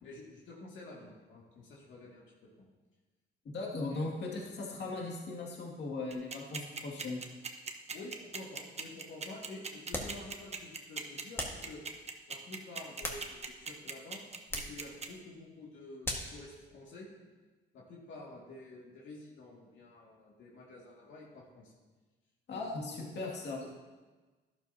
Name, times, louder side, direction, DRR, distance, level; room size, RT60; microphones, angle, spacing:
voice 1, 0.0-2.2 2.6-2.7 3.9-4.1 7.9-11.8 12.3-14.2 14.5-17.1 17.7-21.7 22.5-23.3 23.6-23.7, left 2 dB, 75° left, -4 dB, 2.2 m, -49 dB
voice 2, 3.4-7.2 22.5-23.6, left 3 dB, 60° left, -2 dB, 2.3 m, -38 dB
sound 1, 6.1-15.1, right 5 dB, 35° right, 1.0 m, -39 dB
sound 2, 9.9-10.2 11.4-11.7 12.7-13.6 14.5-14.8 16.0-16.4, left 1 dB, 10° left, 1.7 m, -38 dB
12.0 x 11.5 x 2.8 m, 1.3 s
cardioid pair, 90°, 20 cm